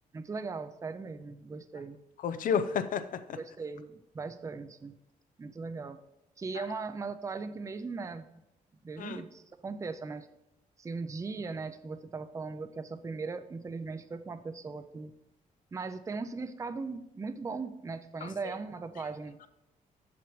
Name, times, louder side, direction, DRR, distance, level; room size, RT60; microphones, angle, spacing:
voice 1, 0.1-2.0 3.4-4.9 5.4-6.0 6.4-8.3 8.8-10.3 10.8-15.1 15.7-19.5, right 4 dB, 20° right, 0.5 m, -38 dB
voice 2, 2.2-3.4 6.5-6.7 9.0-9.2 18.2-18.3, left 7 dB, 70° left, 0.6 m, -31 dB
7.4 x 5.9 x 4.7 m
cardioid pair, 115°, 14 cm